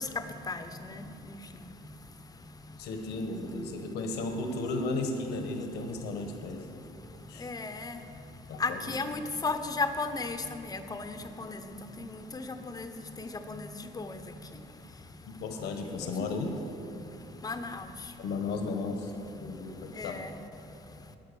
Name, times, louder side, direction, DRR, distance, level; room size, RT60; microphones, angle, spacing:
voice 1, 0.0-3.2 3.5-4.3 5.5-16.3 16.9-18.5 19.2-21.2, left 3 dB, 20° left, 8 dB, 0.8 m, -38 dB
voice 2, 2.8-6.6 7.3-7.5 8.5-8.8 15.3-16.5 18.2-19.1 19.4-20.1, left 3 dB, 80° left, 5 dB, 1.2 m, -34 dB
9.3 x 9.1 x 6.8 m, 2.8 s
cardioid pair, 110°, 17 cm